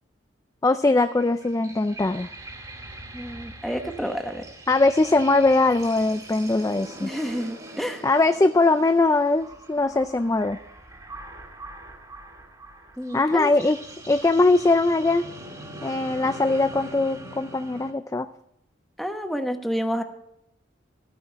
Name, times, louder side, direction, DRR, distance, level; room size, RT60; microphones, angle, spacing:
voice 1, 0.6-2.3 4.7-7.1 8.0-10.6 13.1-13.8 14.1-15.2 15.8-18.3, left 2 dB, 15° left, 10 dB, 0.3 m, -21 dB
sound 1, 1.0-17.9, right 1 dB, 20° right, 2.3 m, -42 dB
voice 2, 3.1-4.4 7.0-8.0 13.0-13.5 19.0-20.0, equal, ahead, 5 dB, 1.0 m, -29 dB
13.5 x 9.5 x 4.6 m, 0.80 s
head